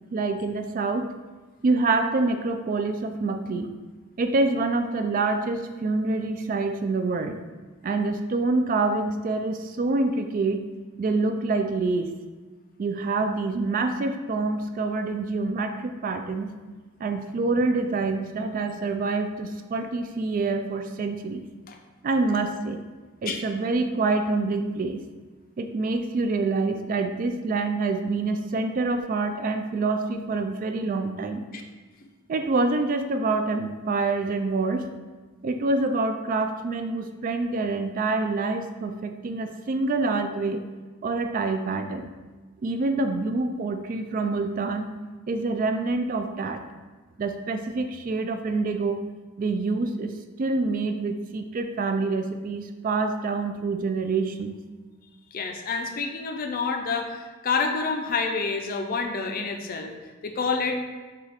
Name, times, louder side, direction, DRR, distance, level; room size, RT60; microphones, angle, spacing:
voice 1, 0.1-1.1 1.6-3.7 4.2-7.4 7.8-10.6 11.0-12.1 12.8-16.5 17.0-21.4 22.0-22.8 23.2-25.0 25.6-31.4 32.3-34.9 35.4-40.6 41.0-42.1 42.6-44.9 45.3-46.6 47.2-49.0 49.4-54.6, right 3 dB, 45° right, 7 dB, 0.3 m, -26 dB
voice 2, 55.3-59.9 60.2-60.8, left 4 dB, 45° left, 4 dB, 0.5 m, -28 dB
6.6 x 2.4 x 3.4 m, 1.3 s
head